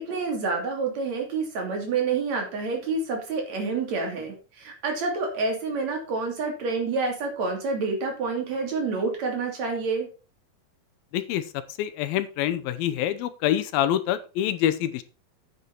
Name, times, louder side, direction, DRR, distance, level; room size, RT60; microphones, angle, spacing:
voice 1, 0.0-10.1, right 4 dB, 50° right, 2 dB, 3.8 m, -28 dB
voice 2, 11.1-11.4 11.8-15.0, left 11 dB, 90° left, 12 dB, 2.7 m, -26 dB
9.3 x 8.4 x 4.5 m, 0.33 s
omnidirectional pair, 4.2 m